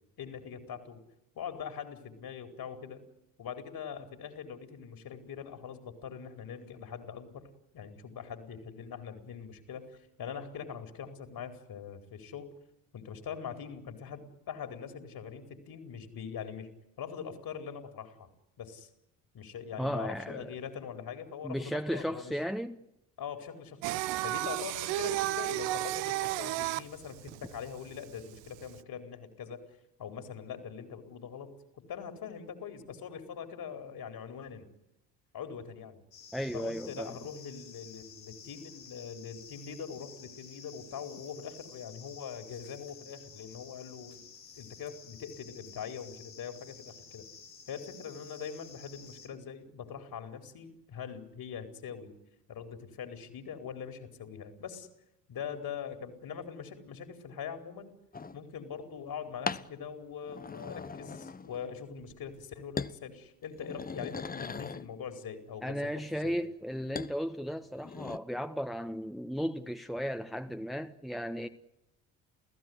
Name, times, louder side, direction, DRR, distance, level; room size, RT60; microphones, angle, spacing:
voice 1, 0.2-1.0 1.3-3.0 3.4-7.5 7.7-12.5 12.9-16.7 17.0-18.3 18.6-18.9 19.3-22.3 23.2-29.6 30.0-34.7 35.3-36.0 36.5-44.2 44.6-47.2 47.7-52.1 52.5-54.9 55.3-58.0 58.3-65.9 66.2-66.4, left 7 dB, 50° left, 4.6 m, -42 dB
voice 2, 19.8-20.5 21.4-22.8 36.3-37.1 65.6-71.5, equal, ahead, 1.4 m, -35 dB
Singing, 23.8-28.8, right 17 dB, 65° right, 1.0 m, -33 dB
sound 1, 36.1-49.3, left 6 dB, 90° left, 3.4 m, -52 dB
sound 2, 58.1-58.4 59.5-59.7 60.2-61.7 62.0-62.4 62.8-63.0 63.4-64.9 67.0-67.1 67.6-68.2, left 5 dB, 20° left, 1.1 m, -39 dB
29.5 x 16.0 x 9.7 m
hypercardioid pair, 55°, 46 cm